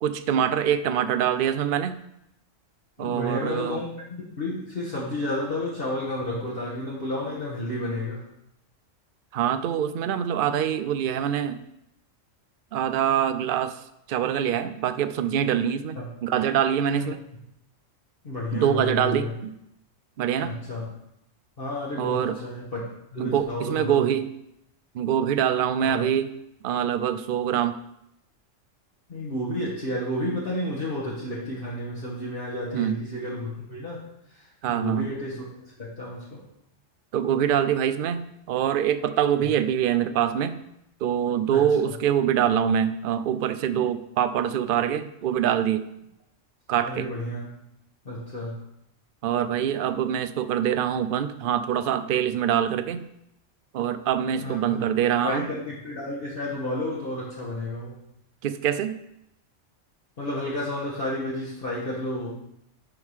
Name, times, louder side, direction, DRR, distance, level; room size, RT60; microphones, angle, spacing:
voice 1, 0.0-2.0 3.0-3.8 9.3-11.6 12.7-13.8 14.1-17.2 18.5-19.5 20.2-20.6 22.0-22.3 23.2-24.3 24.9-26.3 26.6-27.7 32.7-33.0 34.6-35.1 37.1-40.6 41.0-45.8 46.7-47.1 49.2-53.1 53.7-55.5 58.4-59.0, right 9 dB, 60° right, 12 dB, 0.6 m, -24 dB
voice 2, 3.0-8.2 15.9-16.1 16.9-17.1 18.2-19.3 20.4-20.9 21.6-22.8 23.1-24.0 25.8-26.0 29.1-34.0 34.3-35.4 35.8-36.4 41.5-41.7 46.8-47.5 48.0-48.6 54.4-58.0 60.2-62.3, left 1 dB, 45° left, -6 dB, 1.6 m, -31 dB
11.0 x 3.7 x 4.8 m, 0.80 s
omnidirectional pair, 1.3 m